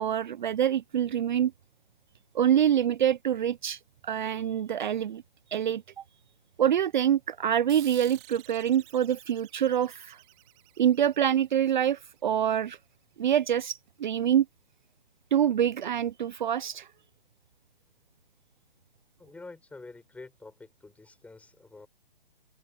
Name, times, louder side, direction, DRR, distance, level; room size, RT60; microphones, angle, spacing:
voice 1, 0.0-1.5 2.3-5.2 5.5-6.0 6.6-10.2 10.8-12.8 13.2-14.5 15.3-16.9, right 9 dB, 50° right, 0.9 m, -26 dB
sound 1, 7.7-12.7, right 32 dB, 30° right, 5.0 m, -52 dB
voice 2, 19.2-21.9, left 3 dB, 5° left, 5.8 m, -47 dB
figure-of-eight pair, 135°, 30 cm